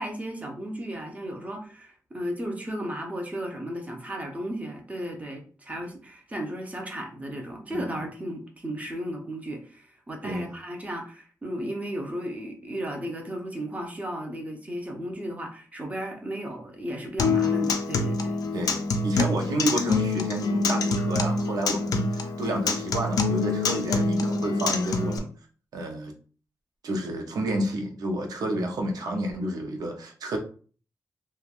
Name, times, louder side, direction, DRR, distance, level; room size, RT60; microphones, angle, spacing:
voice 1, 0.0-18.4, equal, 20° right, 2 dB, 0.7 m, -35 dB
Acoustic guitar, 17.2-25.2, left 3 dB, 75° left, 0.4 m, -26 dB
voice 2, 18.5-25.3 25.7-26.1 26.8-30.4, right 1 dB, 80° right, 3 dB, 0.6 m, -30 dB
3.2 x 2.2 x 2.4 m, 0.41 s
cardioid pair, 95°, 6 cm